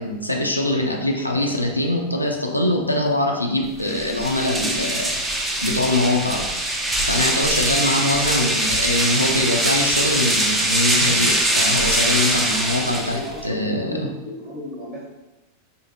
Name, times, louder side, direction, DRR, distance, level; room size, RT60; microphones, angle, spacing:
voice 1, 0.0-6.8 7.1-14.1, left 1 dB, 90° left, 1 dB, 0.4 m, -23 dB
sound 1, 3.8-13.5, right 1 dB, 10° right, 0.4 m, -22 dB
voice 2, 12.4-15.0, left 1 dB, 30° right, -5 dB, 1.1 m, -35 dB
4.3 x 2.7 x 2.7 m, 1.1 s
figure-of-eight pair, 90°, 0 cm